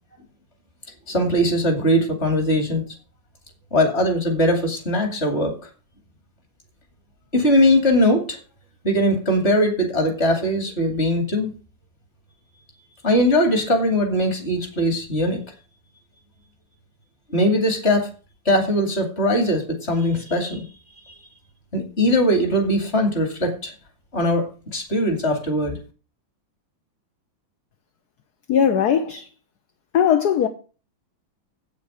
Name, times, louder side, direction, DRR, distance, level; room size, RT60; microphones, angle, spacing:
voice 1, 1.1-2.8 3.7-5.5 7.3-8.4 8.8-11.5 13.0-15.4 17.3-18.1 18.5-20.6 21.7-23.7 24.1-25.8, equal, 30° left, 2.7 m, -20 dB
voice 2, 28.5-29.3 29.9-30.5, left 8 dB, 60° left, 1.3 m, -19 dB
8.6 x 8.5 x 6.3 m
omnidirectional pair, 2.2 m